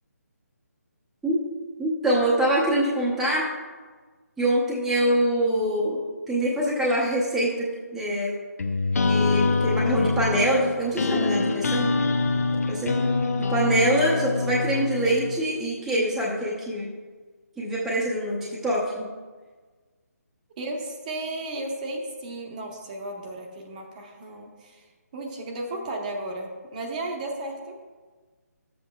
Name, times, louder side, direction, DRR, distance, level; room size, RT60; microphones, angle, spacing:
voice 1, 1.8-3.5 4.4-8.3 9.1-11.9 12.7-13.0 13.4-16.9 17.6-19.1, right 1 dB, 5° right, -8 dB, 0.8 m, -24 dB
sound 1, 8.6-15.4, left 3 dB, 65° left, 0.7 m, -25 dB
voice 2, 20.6-24.9 25.1-27.8, right 2 dB, 30° right, 1 dB, 0.9 m, -34 dB
11.5 x 7.7 x 2.3 m, 1.4 s
hypercardioid pair, 160°, 9 cm